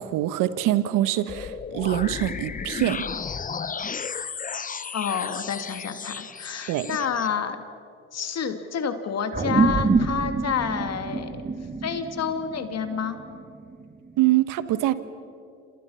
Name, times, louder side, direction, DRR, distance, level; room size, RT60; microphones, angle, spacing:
voice 1, 0.0-3.0 6.7-6.9 14.2-14.9, right 14 dB, 70° right, 13 dB, 1.4 m, -24 dB
sound 1, 1.3-7.3, left 6 dB, 25° left, 0.8 m, -34 dB
voice 2, 4.9-7.6 8.1-11.4 11.8-13.2, left 7 dB, 50° left, 7 dB, 2.6 m, -29 dB
sound 2, 9.3-14.1, right 4 dB, 25° right, 2.0 m, -26 dB
28.0 x 27.0 x 5.7 m, 2.5 s
supercardioid pair, 70°, 33 cm